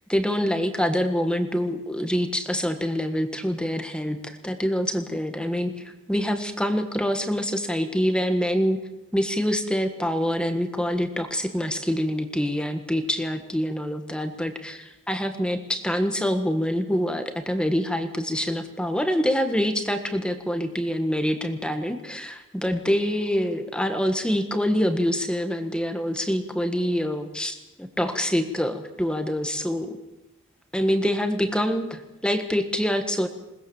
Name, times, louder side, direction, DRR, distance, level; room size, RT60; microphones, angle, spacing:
voice 1, 0.1-8.8 9.1-30.0 30.7-33.3, equal, 5° left, 7 dB, 1.5 m, -25 dB
21.5 x 19.5 x 7.2 m, 0.94 s
head